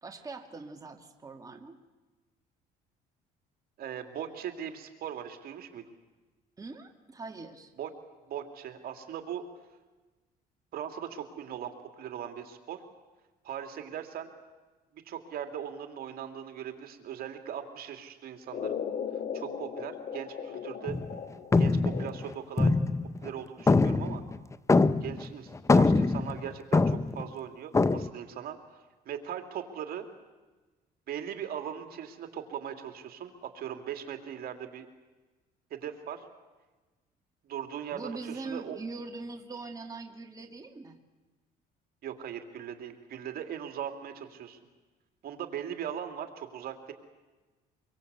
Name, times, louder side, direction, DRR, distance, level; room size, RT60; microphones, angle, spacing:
voice 1, 0.0-1.8 6.6-7.7 37.9-41.0, right 3 dB, 20° right, 3 dB, 2.3 m, -42 dB
voice 2, 3.8-5.8 7.8-7.9 8.3-9.4 10.7-12.8 13.4-14.3 15.0-18.8 19.3-21.0 21.6-22.7 23.2-24.2 25.0-30.1 31.1-34.9 35.7-36.2 37.4-38.8 42.0-44.6 45.2-46.9, right 9 dB, 65° right, 6 dB, 2.7 m, -39 dB
sound 1, 18.5-22.5, left 7 dB, 55° left, 2.6 m, -38 dB
sound 2, 20.9-21.2 21.5-23.3 23.7-25.3 25.5-27.3 27.7-28.1, left 3 dB, 15° left, 0.7 m, -24 dB
24.5 x 24.0 x 8.2 m, 1.2 s
cardioid pair, 110°, 17 cm